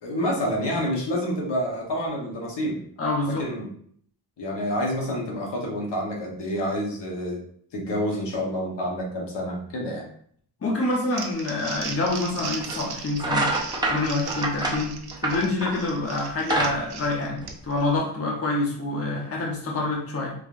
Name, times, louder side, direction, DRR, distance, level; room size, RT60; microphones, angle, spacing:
voice 1, 0.0-2.8 3.2-3.7 4.4-7.4 7.7-10.0, equal, 80° left, -2 dB, 1.1 m, -28 dB
voice 2, 3.0-3.5 10.6-13.5 13.9-15.0 15.2-20.3, left 2 dB, 35° left, -2 dB, 0.8 m, -26 dB
Crumpling crinkling, 10.9-17.8, right 5 dB, 70° right, 0.6 m, -38 dB
sound 1, 12.6-12.8 13.1-15.9 16.3-17.9, right 2 dB, 10° right, 0.5 m, -27 dB
3.7 x 3.1 x 2.5 m, 0.62 s
wide cardioid pair, 125°, 41 cm